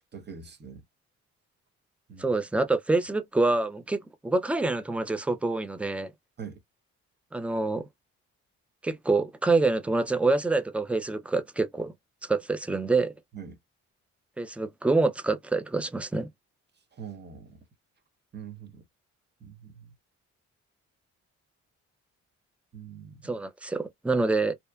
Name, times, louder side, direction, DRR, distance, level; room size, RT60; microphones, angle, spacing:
voice 1, 0.1-0.8 2.1-2.4 6.4-6.6 13.3-13.6 16.9-17.6 18.3-18.8 19.4-19.9 22.7-23.4, right 7 dB, 35° right, 0.8 m, -43 dB
voice 2, 2.2-6.1 7.3-7.8 8.8-11.9 12.2-13.1 14.4-16.3 23.2-24.5, right 3 dB, 5° right, 0.3 m, -26 dB
2.7 x 2.1 x 2.2 m
cardioid pair, 90°, 30 cm